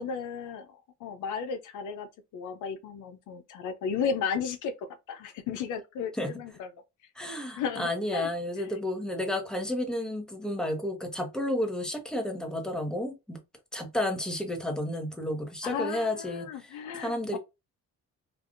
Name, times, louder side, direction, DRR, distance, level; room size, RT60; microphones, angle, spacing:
voice 1, 0.0-6.7 7.6-8.3 15.6-17.4, left 6 dB, 80° left, 0.6 m, -34 dB
voice 2, 7.1-13.4 13.7-17.4, left 1 dB, ahead, 1.0 m, -32 dB
3.3 x 2.4 x 2.5 m
cardioid pair, 90°, 30 cm